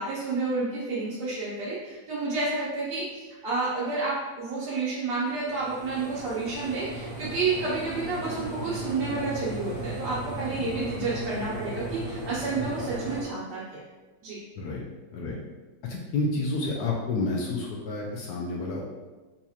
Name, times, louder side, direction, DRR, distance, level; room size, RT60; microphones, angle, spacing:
voice 1, 0.0-13.8 14.2-14.4, right 3 dB, 70° right, -9 dB, 1.2 m, -30 dB
sound 1, 5.4-13.2, right 1 dB, 10° right, 1.0 m, -36 dB
voice 2, 15.9-18.8, left 2 dB, 70° left, -2 dB, 1.0 m, -29 dB
4.1 x 2.8 x 2.3 m, 1.2 s
omnidirectional pair, 2.0 m